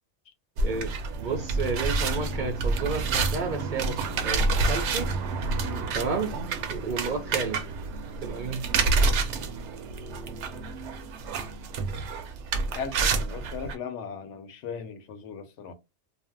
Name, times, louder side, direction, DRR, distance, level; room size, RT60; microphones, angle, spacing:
voice 1, 0.6-0.9 1.2-5.1 5.9-6.3 6.7-7.6 8.2-8.6, right 4 dB, 60° right, 0.5 m, -31 dB
sound 1, 0.6-13.7, right 3 dB, 80° right, 0.9 m, -28 dB
voice 2, 5.6-6.0 12.7-15.7, left 6 dB, 90° left, 1.0 m, -38 dB
2.6 x 2.0 x 3.3 m
omnidirectional pair, 1.2 m